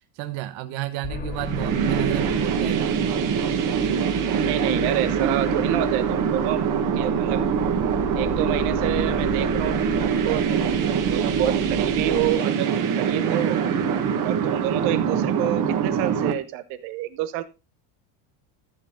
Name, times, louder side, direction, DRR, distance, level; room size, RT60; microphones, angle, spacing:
voice 1, 0.2-3.0, right 15 dB, 70° right, 9 dB, 1.1 m, -31 dB
sound 1, 1.0-12.3, left 7 dB, 20° left, 0.6 m, -36 dB
sound 2, 1.3-16.3, right 7 dB, 40° right, 1.6 m, -24 dB
voice 2, 4.3-6.6 7.0-7.4 8.1-12.7 13.0-13.6 14.2-17.4, right 13 dB, 85° right, 11 dB, 1.3 m, -28 dB
14.0 x 6.9 x 3.7 m, 0.27 s
cardioid pair, 170°, 49 cm